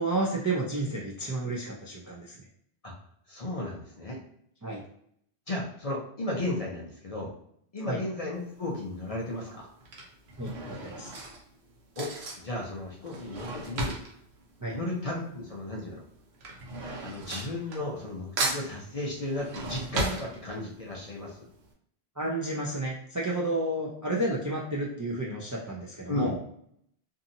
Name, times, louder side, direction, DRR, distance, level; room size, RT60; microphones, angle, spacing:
voice 1, 0.0-2.4 4.6-4.8 7.9-8.0 10.4-10.5 10.8-11.1 14.6-14.8 22.2-26.4, right 2 dB, 30° right, -4 dB, 0.3 m, -31 dB
voice 2, 3.3-4.2 5.5-7.3 7.7-9.7 12.0-12.1 12.4-14.0 14.7-16.0 17.0-21.4 26.1-26.4, left 1 dB, 45° left, -3 dB, 0.5 m, -34 dB
Drawer open or close / Cutlery silverware, 8.4-8.8 9.6-15.5 15.7-18.1 18.4-20.9 21.3-21.4 21.6-21.7, right 2 dB, 80° right, 0.9 m, -36 dB
2.7 x 2.6 x 2.6 m, 0.68 s
omnidirectional pair, 1.1 m